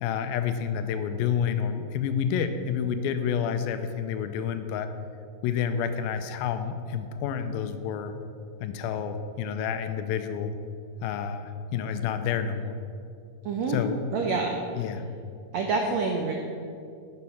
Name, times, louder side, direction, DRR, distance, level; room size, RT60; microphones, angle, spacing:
voice 1, 0.0-4.9 5.4-8.1 8.6-10.6 11.0-12.8 13.7-14.0 14.8-15.0, left 7 dB, 85° left, 9 dB, 2.4 m, -29 dB
voice 2, 13.4-13.8 14.1-14.6 15.5-16.3, right 4 dB, 85° right, 2 dB, 1.5 m, -27 dB
11.0 x 7.4 x 5.7 m, 2.4 s
omnidirectional pair, 4.2 m